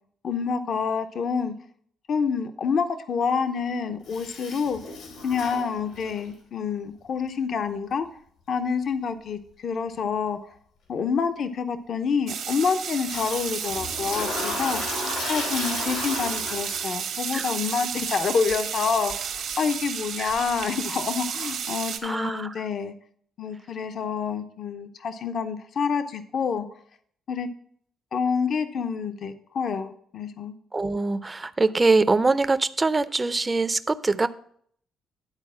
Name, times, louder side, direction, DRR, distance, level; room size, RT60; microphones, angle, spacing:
voice 1, 0.2-1.5 2.1-4.8 5.2-8.1 8.5-10.4 10.9-14.8 15.3-22.9 23.4-26.7 27.3-27.5 28.1-30.5, left 6 dB, 60° left, 9 dB, 0.7 m, -27 dB
Toilet flush, 4.1-6.3 13.1-17.2, left 3 dB, 85° left, 2.6 m, -34 dB
sound 1, 12.3-22.0, right 8 dB, 75° right, 1.3 m, -32 dB
voice 2, 22.0-22.6 30.7-34.3, right 3 dB, 25° right, 13 dB, 0.5 m, -23 dB
10.5 x 4.2 x 7.2 m, 0.62 s
cardioid pair, 90°, 0 cm